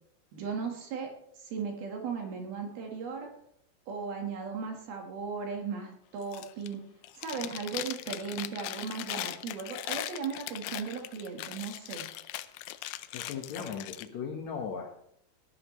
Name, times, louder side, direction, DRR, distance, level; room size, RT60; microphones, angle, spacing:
voice 1, 0.3-1.1 1.4-3.3 3.9-6.8 7.2-12.0, right 5 dB, 70° right, 2 dB, 3.3 m, -37 dB
Chewing mastication, 6.2-6.7 7.0-14.1, left 15 dB, 80° left, 2.4 m, -39 dB
voice 2, 13.1-14.9, left 6 dB, 65° left, 2 dB, 1.9 m, -37 dB
19.0 x 12.0 x 3.1 m, 0.72 s
omnidirectional pair, 4.6 m